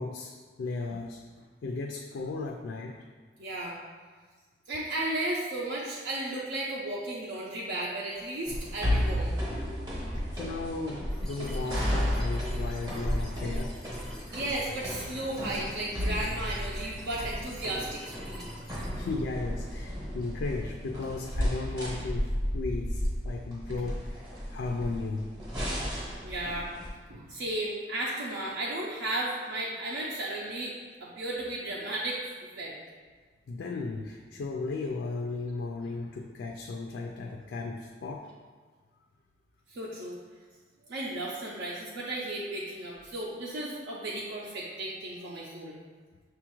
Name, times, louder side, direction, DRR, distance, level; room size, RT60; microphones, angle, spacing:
voice 1, 0.0-3.0 10.3-13.8 18.9-25.3 33.5-38.3, left 3 dB, 70° left, 1 dB, 0.3 m, -35 dB
voice 2, 3.4-3.8 4.7-9.4 14.3-18.5 26.2-26.7 27.1-32.2 32.5-32.8 39.7-40.2 40.9-45.8, right 1 dB, 75° right, -5 dB, 0.5 m, -34 dB
sound 1, 8.5-26.9, equal, 25° right, 0.7 m, -33 dB
sound 2, 11.1-18.9, equal, 5° left, 0.4 m, -50 dB
6.2 x 2.4 x 3.0 m, 1.5 s
head